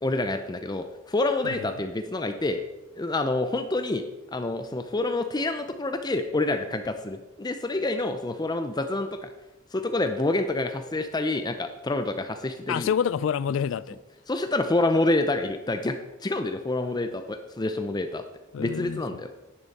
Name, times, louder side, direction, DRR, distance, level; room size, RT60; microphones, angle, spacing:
voice 1, 0.0-2.6 2.9-4.0 4.3-9.3 9.7-12.9 14.3-18.2 18.6-19.3, left 2 dB, 20° left, 0.6 m, -27 dB
voice 2, 12.7-14.0 18.5-19.2, left 7 dB, 75° left, 0.3 m, -27 dB
10.5 x 10.5 x 4.2 m
head